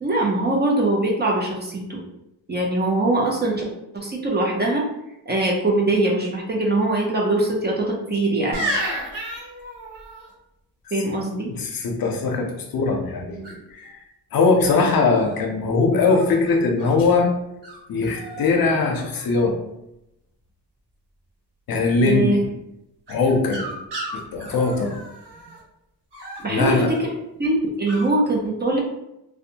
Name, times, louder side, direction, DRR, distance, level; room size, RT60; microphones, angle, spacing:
voice 1, 0.0-2.0 2.5-3.6 3.9-4.8 5.3-8.6 10.9-11.5 22.1-22.3 26.4-27.0 27.4-28.8, right 2 dB, 25° right, -2 dB, 0.4 m, -22 dB
sound 1, 8.5-10.3 13.4-13.8 14.6-15.4 16.0-16.9 17.6-17.8 18.0-18.5 18.8-19.4 23.1-25.6 26.1-27.0 27.9-28.1, right 1 dB, 80° right, 1.1 m, -33 dB
voice 2, 11.5-14.0 14.3-17.3 17.9-19.6 21.7-22.5 23.1-23.7 24.1-25.0 26.5-26.9, left 4 dB, 60° left, 2 dB, 0.5 m, -21 dB
2.5 x 2.1 x 2.7 m, 0.87 s
wide cardioid pair, 130°, 41 cm